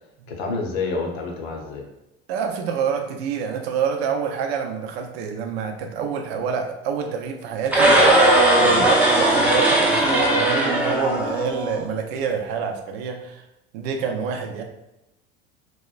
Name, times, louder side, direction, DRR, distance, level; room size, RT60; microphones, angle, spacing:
voice 1, 0.3-1.8 8.6-8.9, left 3 dB, 80° left, 1 dB, 0.7 m, -28 dB
voice 2, 2.3-7.9 8.5-13.4 13.7-14.6, right 6 dB, 75° right, 4 dB, 0.5 m, -27 dB
sound 1, 7.7-11.8, right 1 dB, 5° right, 0.6 m, -18 dB
2.9 x 2.1 x 2.3 m, 0.88 s
hypercardioid pair, 85°, 31 cm